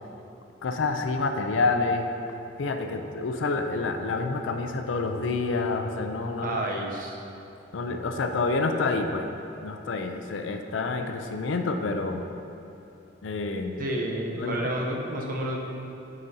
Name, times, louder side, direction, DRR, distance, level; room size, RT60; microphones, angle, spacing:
voice 1, 0.6-2.1 2.6-6.6 7.7-9.3 9.6-12.2 13.2-13.8 14.4-14.8, left 3 dB, 90° left, 6 dB, 0.5 m, -28 dB
voice 2, 6.4-7.2 13.8-15.6, right 1 dB, 50° right, 0 dB, 0.8 m, -30 dB
9.8 x 5.0 x 2.8 m, 2.9 s
head